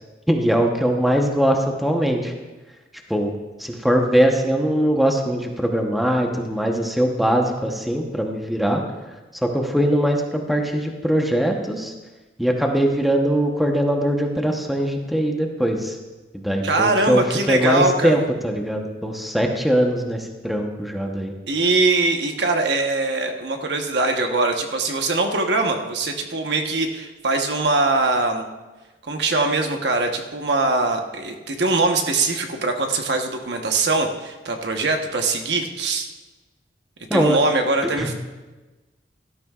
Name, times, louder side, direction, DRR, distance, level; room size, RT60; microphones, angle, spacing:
voice 1, 0.3-2.3 3.1-3.3 3.6-8.8 9.3-11.9 12.4-16.0 16.3-21.3 37.1-37.4 38.0-38.1, equal, ahead, 2 dB, 1.0 m, -21 dB
voice 2, 16.6-18.2 21.5-28.5 29.1-36.1 37.1-38.1, right 3 dB, 75° right, 4 dB, 1.1 m, -22 dB
17.5 x 12.5 x 2.4 m, 1.2 s
head